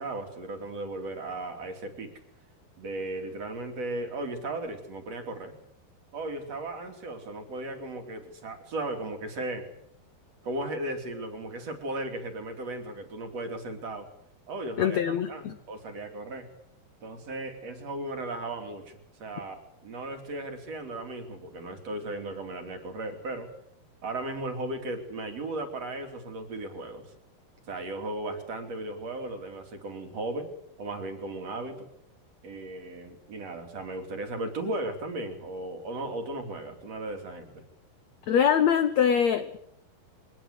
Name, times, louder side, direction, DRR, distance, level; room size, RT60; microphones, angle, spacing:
voice 1, 0.0-2.1 2.8-5.5 6.1-9.7 10.4-14.1 14.5-16.5 17.0-23.5 24.0-27.1 27.7-30.5 30.8-31.9 32.4-37.6, right 2 dB, 40° right, 5 dB, 4.0 m, -36 dB
voice 2, 14.8-15.6 38.3-39.6, left 8 dB, 70° left, 10 dB, 1.7 m, -23 dB
24.0 x 19.0 x 8.3 m, 0.76 s
omnidirectional pair, 4.6 m